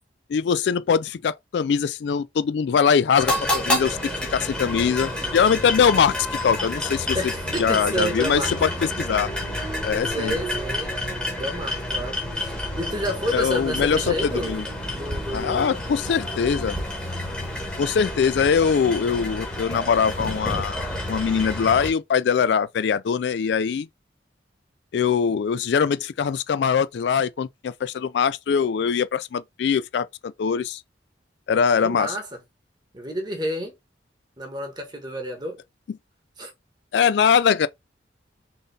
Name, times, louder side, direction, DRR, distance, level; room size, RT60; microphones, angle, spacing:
voice 1, 0.3-4.0 4.3-7.2 7.6-8.7 9.0-9.3 9.8-10.3 13.3-14.6 15.3-16.8 17.8-20.8 21.1-23.9 24.9-30.8 31.5-32.2 36.9-37.7, left 6 dB, 70° left, 0.3 m, -22 dB
sound 1, 3.2-21.9, left 1 dB, 5° left, 1.5 m, -29 dB
voice 2, 7.1-8.6 10.1-10.9 11.4-14.6 14.9-15.8 31.8-32.2 32.9-33.7 34.4-35.6 36.4-36.5, right 1 dB, 25° right, 1.5 m, -30 dB
4.0 x 3.7 x 3.4 m
head